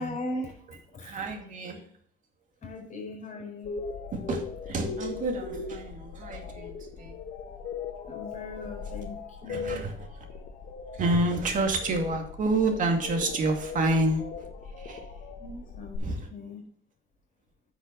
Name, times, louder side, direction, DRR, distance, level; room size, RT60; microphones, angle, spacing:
voice 1, 0.0-0.6 0.9-1.2 2.6-3.7 8.1-9.8 15.4-16.6, left 1 dB, 40° left, 0 dB, 4.3 m, -38 dB
voice 2, 1.0-1.8 4.1-7.2 9.5-10.3 10.9-14.5 14.8-15.0 16.0-16.3, right 2 dB, 50° right, 3 dB, 2.2 m, -29 dB
sound 1, 3.6-16.0, left 5 dB, 65° left, 1.5 m, -39 dB
10.0 x 6.3 x 4.0 m, 0.63 s
cardioid pair, 110°, 17 cm